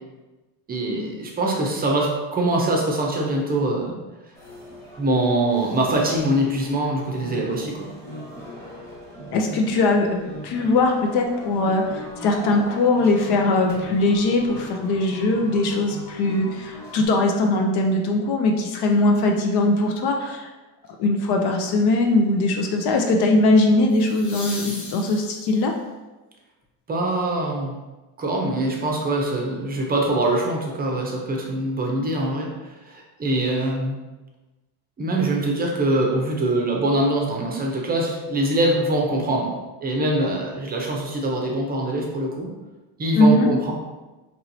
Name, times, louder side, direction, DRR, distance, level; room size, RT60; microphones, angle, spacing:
voice 1, 0.7-4.0 5.0-7.9 26.9-27.8 28.2-34.0 35.0-39.5 39.8-42.5 43.0-43.7, right 1 dB, 20° right, 0 dB, 0.6 m, -23 dB
sound 1, 4.4-17.1, equal, 5° left, 1.0 m, -39 dB
voice 2, 9.3-20.5 21.0-25.7 43.2-43.5, left 2 dB, 55° left, 2 dB, 0.6 m, -20 dB
sound 2, 20.9-21.2 23.9-25.8 28.7-28.8, left 2 dB, 40° left, 1.0 m, -38 dB
4.4 x 3.0 x 2.7 m, 1.1 s
cardioid pair, 140°, 46 cm